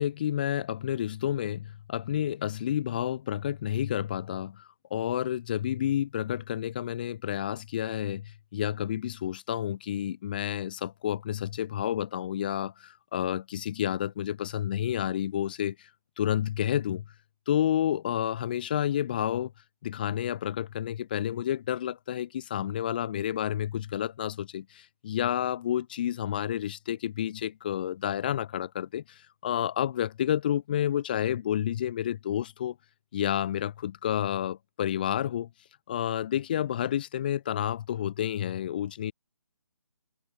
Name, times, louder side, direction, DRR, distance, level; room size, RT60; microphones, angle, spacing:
voice 1, 0.0-4.6 4.9-8.2 8.5-15.7 16.2-17.0 17.5-19.5 19.8-24.6 25.0-29.0 29.4-32.7 33.1-35.5 35.9-39.1, left 10 dB, 20° left, 1.7 m, -30 dB
hypercardioid pair, 180°, 14 cm